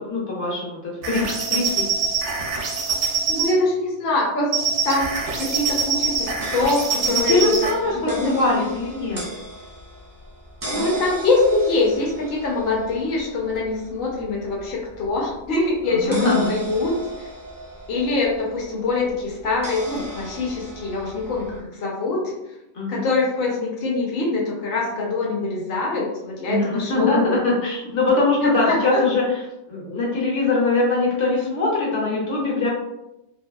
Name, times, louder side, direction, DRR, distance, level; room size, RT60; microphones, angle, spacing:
voice 1, 0.0-1.9 7.1-9.2 10.7-11.0 15.9-16.5 22.7-23.0 26.5-29.2 29.7-32.7, left 3 dB, 75° left, -4 dB, 1.1 m, -22 dB
sound 1, 1.0-3.6 4.5-7.8, right 6 dB, 80° right, 0.9 m, -24 dB
voice 2, 3.3-4.5 4.8-5.1 5.4-7.5 7.9-8.7 10.7-17.3 17.9-22.2 22.9-27.4 28.4-29.0, left 3 dB, 60° left, -3 dB, 0.8 m, -24 dB
sound 2, 5.0-21.6, right 1 dB, 30° right, 0.4 m, -37 dB
2.6 x 2.3 x 2.2 m, 0.92 s
omnidirectional pair, 1.2 m